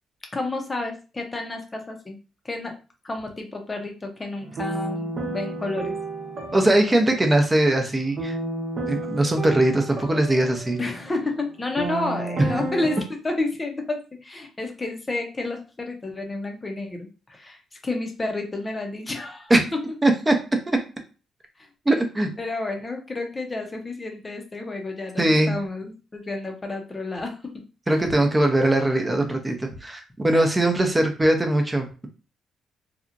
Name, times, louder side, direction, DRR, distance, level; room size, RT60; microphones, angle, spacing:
voice 1, 0.3-2.2 2.4-2.7 3.0-5.9 10.8-19.8 22.4-27.6 30.7-30.9, left 2 dB, 25° left, 3 dB, 0.7 m, -30 dB
sound 1, 4.4-13.0, right 2 dB, 50° right, 0.7 m, -32 dB
voice 2, 6.5-8.4 8.9-10.8 19.5-19.6 20.0-20.4 20.7-20.8 21.9-22.3 25.2-25.5 27.9-32.1, right 1 dB, 15° right, 4 dB, 0.6 m, -21 dB
2.8 x 2.3 x 2.5 m, 0.33 s
cardioid pair, 90°, 0 cm